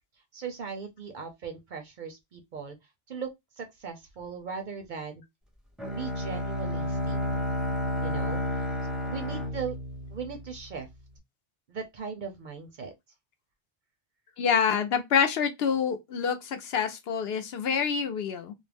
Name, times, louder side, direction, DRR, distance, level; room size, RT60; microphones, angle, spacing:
voice 1, 0.3-2.8 3.1-3.3 3.6-5.2 5.9-7.6 8.0-8.4 9.0-9.7 10.1-10.9 11.7-12.9, right 6 dB, 55° right, 0.6 m, -38 dB
Bowed string instrument, 5.8-10.8, equal, ahead, 0.4 m, -31 dB
voice 2, 14.4-18.5, left 7 dB, 70° left, 0.8 m, -27 dB
2.4 x 2.0 x 3.3 m
omnidirectional pair, 1.1 m